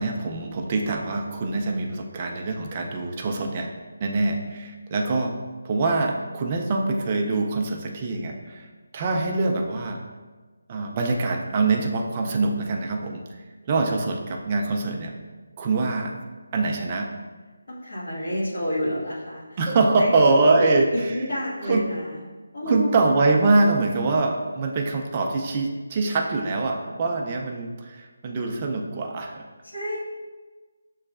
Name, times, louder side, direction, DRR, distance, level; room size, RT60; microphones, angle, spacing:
voice 1, 0.0-3.7 4.0-5.3 5.6-8.7 8.9-10.0 10.7-13.2 13.7-15.1 15.6-16.1 16.5-17.1 19.6-20.9 21.7-21.8 22.7-29.4, right 3 dB, 20° right, 1 dB, 0.3 m, -24 dB
voice 2, 17.7-22.2 22.5-23.0 29.6-30.0, equal, 65° left, -6 dB, 1.5 m, -29 dB
6.5 x 3.0 x 2.3 m, 1.3 s
figure-of-eight pair, 180°, 0 cm